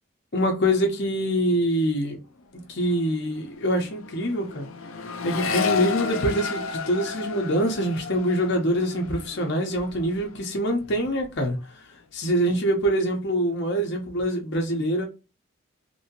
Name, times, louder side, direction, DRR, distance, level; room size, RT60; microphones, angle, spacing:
voice 1, 0.3-2.2 2.5-4.7 5.2-11.6 12.1-15.1, equal, 55° left, 0.9 m, -25 dB
Accelerating revving vroom, 2.4-2.6 2.9-10.4 10.7-11.3, left 5 dB, 80° left, 0.5 m, -33 dB
3.0 x 2.8 x 2.8 m
head